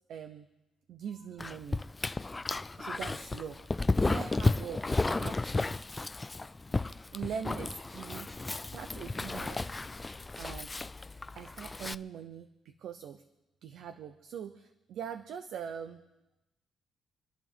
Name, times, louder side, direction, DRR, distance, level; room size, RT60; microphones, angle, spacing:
voice 1, 0.1-0.5 0.9-1.8 2.8-3.6 4.0-5.8 7.1-8.3 8.7-9.7 10.4-10.8 11.3-13.2 13.6-16.0, right 7 dB, 75° right, 9 dB, 0.8 m, -42 dB
Dog, 1.4-12.0, left 3 dB, 20° left, 0.4 m, -33 dB
28.5 x 11.0 x 3.7 m, 0.97 s
cardioid pair, 90°, 0 cm